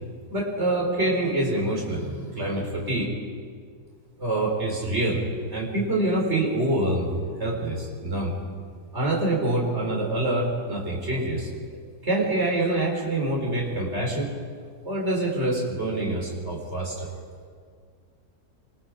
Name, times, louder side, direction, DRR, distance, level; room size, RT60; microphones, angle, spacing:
voice 1, 0.3-3.0 4.2-5.2 5.5-8.4 8.9-11.5 12.0-14.3 14.8-17.1, right 1 dB, 45° right, -1 dB, 5.1 m, -26 dB
27.0 x 24.5 x 5.0 m, 2.1 s
omnidirectional pair, 1.7 m